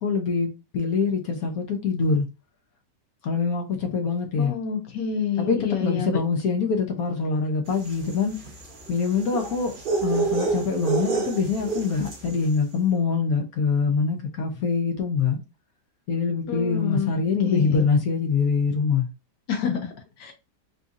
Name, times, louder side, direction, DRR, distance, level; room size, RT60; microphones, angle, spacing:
voice 1, 0.0-2.3 3.2-4.5 5.4-8.4 8.9-15.4 16.1-19.1, left 5 dB, 65° left, 1.1 m, -24 dB
voice 2, 4.4-6.2 16.5-17.1 17.4-17.8 19.5-20.3, left 7 dB, 90° left, 1.6 m, -28 dB
sound 1, 7.8-12.3, right 4 dB, 45° right, 0.7 m, -28 dB
3.8 x 2.8 x 2.4 m
omnidirectional pair, 1.8 m